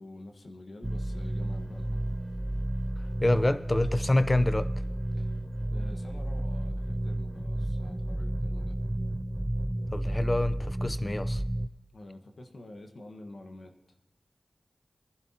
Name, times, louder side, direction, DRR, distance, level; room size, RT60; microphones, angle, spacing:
voice 1, 0.0-2.2 5.1-5.3 5.7-8.8 11.9-13.7, left 2 dB, 75° left, 4 dB, 1.4 m, -48 dB
sound 1, 0.8-11.7, right 1 dB, 15° right, 0.5 m, -32 dB
voice 2, 3.2-4.7 9.9-11.4, left 1 dB, 30° left, 12 dB, 0.7 m, -26 dB
21.0 x 11.5 x 2.9 m, 1.0 s
cardioid pair, 40°, 0 cm